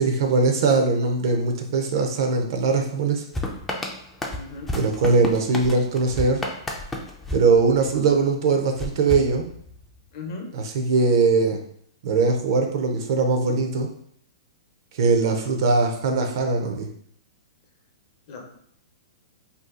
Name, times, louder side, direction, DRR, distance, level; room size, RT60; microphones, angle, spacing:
voice 1, 0.0-3.2 4.7-6.4 7.3-9.5 10.5-11.6 12.0-13.9 14.9-16.9, right 4 dB, 55° right, 4 dB, 0.5 m, -21 dB
sound 1, 3.3-8.2 8.8-10.0, left 1 dB, 5° left, 0.4 m, -32 dB
voice 2, 4.3-4.7 10.1-10.5 18.3-18.4, left 3 dB, 50° left, 1 dB, 0.8 m, -36 dB
2.7 x 2.3 x 3.6 m, 0.65 s
hypercardioid pair, 145°, 3 cm